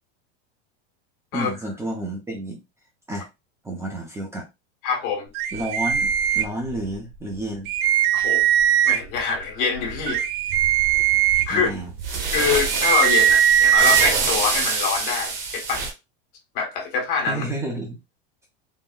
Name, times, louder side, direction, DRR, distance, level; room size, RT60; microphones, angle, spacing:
voice 1, 1.3-2.6 3.1-3.3 3.6-4.5 5.5-7.7 11.5-11.9 17.3-18.0, right 1 dB, 10° right, 0.4 m, -30 dB
voice 2, 4.8-5.3 8.1-8.4 8.8-10.2 11.5-11.7 12.3-15.9 16.5-17.4, left 5 dB, 65° left, 1.3 m, -25 dB
sound 1, 5.3-6.9 7.3-7.4 7.7-9.2 9.7-14.1, right 11 dB, 85° right, 0.5 m, -20 dB
sound 2, 10.9-11.2 12.0-15.9, right 4 dB, 50° right, 1.1 m, -25 dB
3.7 x 2.0 x 2.4 m
supercardioid pair, 155°, 29 cm